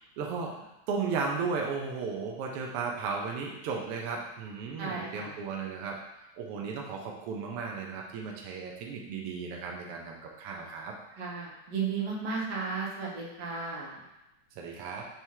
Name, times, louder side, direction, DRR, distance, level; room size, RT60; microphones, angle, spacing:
voice 1, 0.2-0.6 0.9-6.0 6.4-10.9 14.6-15.1, right 5 dB, 75° right, 0 dB, 1.3 m, -35 dB
voice 2, 4.8-5.3 11.2-13.9, right 5 dB, 60° right, -4 dB, 2.1 m, -34 dB
7.2 x 3.3 x 4.6 m, 0.94 s
omnidirectional pair, 3.5 m